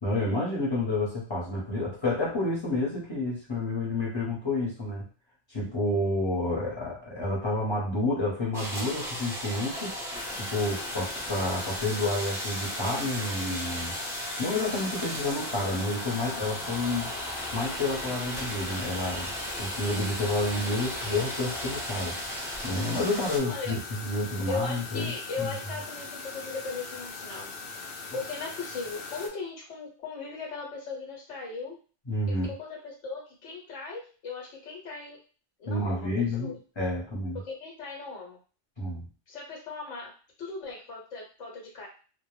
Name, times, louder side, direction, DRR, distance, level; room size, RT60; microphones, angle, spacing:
voice 1, 0.0-5.0 5.5-9.9 10.3-14.0 14.4-17.1 17.5-19.3 19.6-22.2 22.6-25.5 32.1-32.5 35.7-37.4 38.8-39.1, left 2 dB, 25° left, -5 dB, 0.7 m, -29 dB
sound 1, 8.5-23.4, equal, 5° right, 0.5 m, -36 dB
sound 2, 10.1-29.3, left 4 dB, 60° left, 0.7 m, -41 dB
voice 2, 24.4-31.8 32.3-35.2 35.6-36.6 37.3-38.4 39.3-40.1 40.4-41.9, left 4 dB, 90° left, -2 dB, 1.0 m, -38 dB
2.1 x 2.1 x 3.0 m, 0.38 s
omnidirectional pair, 1.2 m